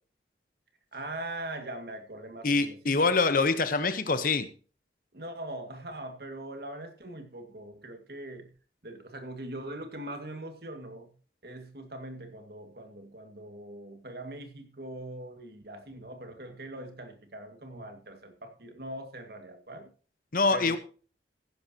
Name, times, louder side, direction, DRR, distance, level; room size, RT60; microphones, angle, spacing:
voice 1, 0.9-3.1 5.1-8.5 8.8-11.1 11.4-19.9 20.5-20.8, right 1 dB, 60° right, 2.0 m, -41 dB
voice 2, 2.4-4.5 20.3-20.8, left 3 dB, 50° left, 1.0 m, -25 dB
14.5 x 11.0 x 2.9 m
head